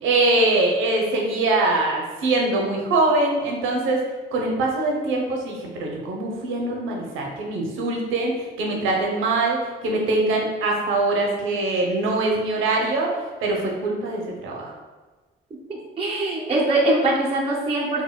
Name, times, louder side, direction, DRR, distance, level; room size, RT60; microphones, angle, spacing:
voice 1, 0.0-4.0 4.3-13.1 13.4-14.7, right 2 dB, 85° right, 0 dB, 0.7 m, -23 dB
voice 2, 15.7-18.0, right 2 dB, 30° right, -4 dB, 0.5 m, -22 dB
4.1 x 2.1 x 2.2 m, 1.3 s
cardioid pair, 90°, 20 cm